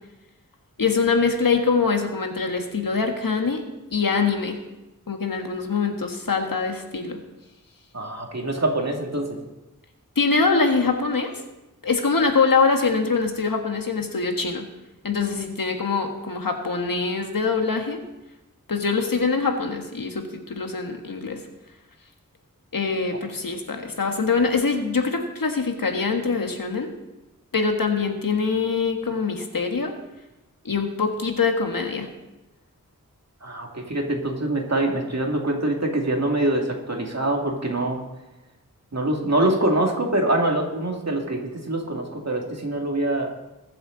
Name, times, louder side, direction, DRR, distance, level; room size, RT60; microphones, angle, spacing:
voice 1, 0.8-3.6 3.9-4.6 5.1-7.2 10.1-11.3 11.8-14.6 15.0-18.0 18.7-21.4 22.7-26.9 27.5-29.9 30.6-32.1, left 4 dB, 85° left, 4 dB, 1.5 m, -23 dB
voice 2, 7.9-9.3 33.4-38.0 38.9-43.3, right 1 dB, 50° right, 0 dB, 2.4 m, -24 dB
21.5 x 7.7 x 4.0 m, 0.99 s
wide cardioid pair, 60°, 33 cm